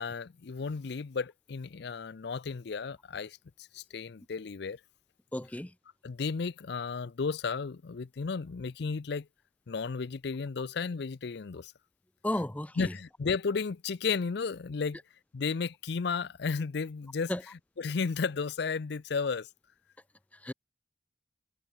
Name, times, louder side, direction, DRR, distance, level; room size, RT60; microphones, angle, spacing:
voice 1, 0.0-4.8 6.0-9.3 9.7-11.7 12.8-15.0 15.3-17.3 17.8-19.5, left 5 dB, 65° left, 0.5 m, -33 dB
voice 2, 5.3-5.7 12.2-12.9 17.3-17.4 20.4-20.5, left 1 dB, 10° left, 0.5 m, -33 dB
head